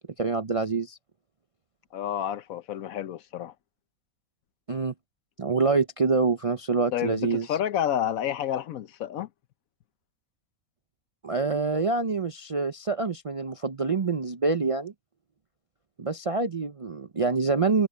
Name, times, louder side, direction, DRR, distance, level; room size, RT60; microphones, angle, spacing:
voice 1, 0.2-1.0 4.7-4.9 5.4-7.5 11.2-14.9 16.0-17.9, right 4 dB, 40° right, 0.4 m, -26 dB
voice 2, 1.9-3.5 6.9-9.3, left 10 dB, 70° left, 1.1 m, -30 dB
omnidirectional pair, 1.5 m